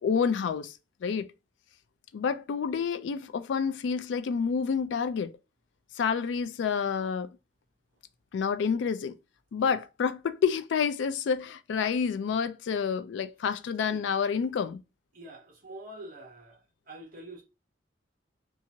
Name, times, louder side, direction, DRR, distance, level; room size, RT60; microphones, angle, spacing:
voice 1, 0.0-0.7 1.0-1.3 2.1-5.3 5.9-7.3 8.3-9.2 9.5-14.8, left 6 dB, 70° left, 0.3 m, -28 dB
voice 2, 15.1-16.6 16.9-17.4, right 1 dB, 45° right, 0.9 m, -46 dB
2.8 x 2.4 x 2.6 m
head